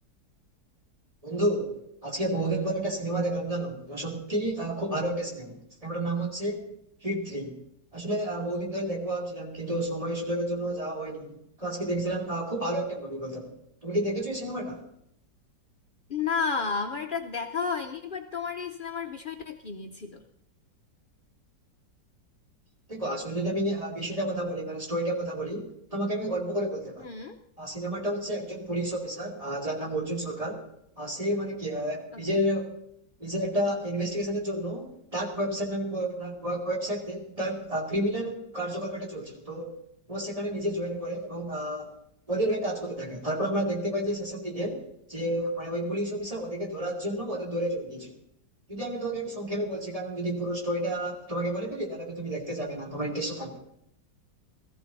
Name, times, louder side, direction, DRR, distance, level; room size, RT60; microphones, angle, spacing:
voice 1, 1.2-6.7 7.0-7.6 7.9-13.5 13.8-14.8 22.9-27.1 27.6-30.6 31.0-32.7 33.2-39.7 40.1-41.9 42.3-48.1 48.7-53.6, right 1 dB, 20° right, -1 dB, 2.6 m, -31 dB
voice 2, 16.1-20.2 27.0-27.4 32.1-32.5, left 5 dB, 80° left, 5 dB, 0.4 m, -32 dB
18.0 x 14.5 x 4.0 m, 0.75 s
omnidirectional pair, 1.9 m